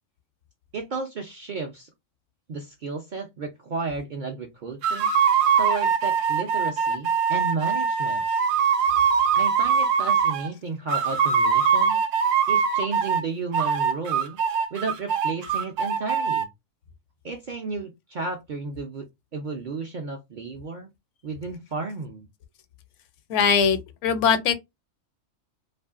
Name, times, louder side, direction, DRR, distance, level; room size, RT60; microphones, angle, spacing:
voice 1, 0.7-1.9 2.5-5.1 5.6-8.2 9.3-12.0 12.5-14.4 14.7-16.5 17.2-19.1 19.3-20.9 21.2-22.3, right 4 dB, 55° right, 0.5 m, -33 dB
sound 1, 4.8-10.5 10.9-13.2 13.5-16.4, right 6 dB, 80° right, 0.9 m, -22 dB
voice 2, 23.3-24.6, left 7 dB, 75° left, 0.9 m, -21 dB
2.6 x 2.5 x 2.3 m
omnidirectional pair, 1.3 m